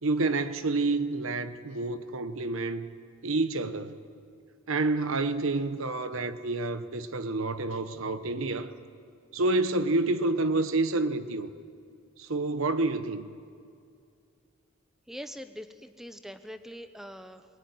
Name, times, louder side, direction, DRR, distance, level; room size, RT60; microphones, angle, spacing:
voice 1, 0.0-2.9 3.2-4.0 4.7-8.7 9.3-11.5 12.2-13.3, right 2 dB, 75° right, 1.1 m, -28 dB
voice 2, 15.1-17.5, equal, ahead, 0.9 m, -43 dB
22.0 x 21.5 x 9.5 m
head